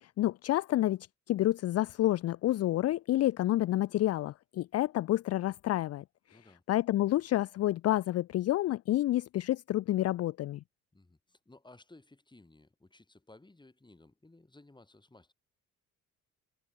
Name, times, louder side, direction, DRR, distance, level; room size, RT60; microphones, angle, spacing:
voice 1, 0.0-1.0 1.3-6.0 6.7-10.6, left 14 dB, 55° left, 0.4 m, -29 dB
voice 2, 6.3-6.6 10.9-15.3, left 2 dB, 15° left, 7.9 m, -58 dB
cardioid pair, 90°, 30 cm